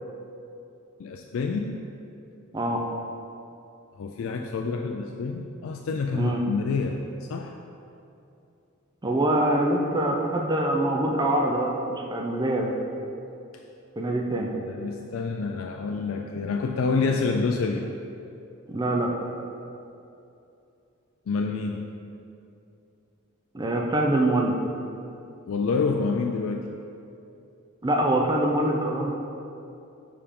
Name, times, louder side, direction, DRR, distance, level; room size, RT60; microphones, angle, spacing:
voice 1, 1.0-1.8 4.0-7.6 14.3-17.9 21.3-21.9 25.5-26.7, left 4 dB, 70° left, 3 dB, 0.3 m, -28 dB
voice 2, 9.0-12.7 14.0-14.5 18.7-19.1 23.5-24.6 27.8-29.1, right 1 dB, 20° right, 1 dB, 0.5 m, -24 dB
6.8 x 5.0 x 3.7 m, 2.7 s
head